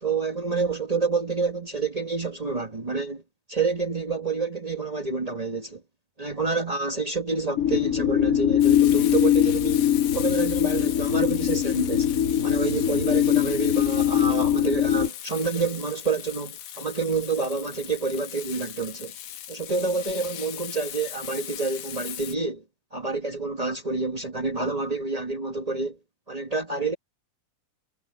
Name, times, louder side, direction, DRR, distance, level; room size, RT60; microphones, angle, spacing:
voice 1, 0.0-3.2 3.5-5.8 6.2-9.9 10.1-12.1 12.4-19.1 19.5-22.6 22.9-26.0 26.3-26.9, right 4 dB, 60° right, 0.4 m, -28 dB
sound 1, 7.5-15.1, left 10 dB, 35° left, 1.7 m, -22 dB
Frying (food), 8.6-22.4, left 11 dB, 80° left, 2.9 m, -38 dB
omnidirectional pair, 3.8 m